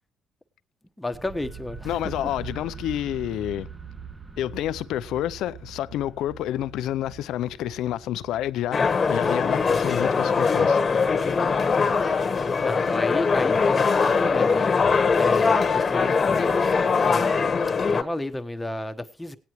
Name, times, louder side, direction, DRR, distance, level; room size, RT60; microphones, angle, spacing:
voice 1, 1.0-2.0 2.2-2.3 12.6-14.7 15.1-17.5 17.9-19.4, left 1 dB, 10° left, 1.1 m, -32 dB
sound 1, 1.1-13.0, right 6 dB, 25° right, 1.0 m, -43 dB
voice 2, 1.8-3.7 4.4-10.8, left 12 dB, 85° left, 0.5 m, -29 dB
sound 2, 8.7-18.0, left 5 dB, 35° left, 1.2 m, -21 dB
17.5 x 9.5 x 3.0 m
cardioid pair, 90°, 0 cm